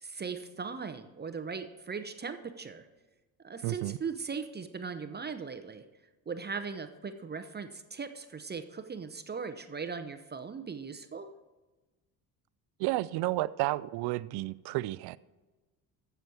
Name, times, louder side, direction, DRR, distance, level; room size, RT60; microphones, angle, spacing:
voice 1, 0.0-2.9 3.4-5.8 6.3-11.3, right 5 dB, 25° right, 9 dB, 0.7 m, -39 dB
voice 2, 3.6-4.0 12.8-15.2, right 18 dB, 75° right, 16 dB, 0.5 m, -31 dB
14.5 x 7.0 x 4.7 m, 1.2 s
cardioid pair, 105°, 40 cm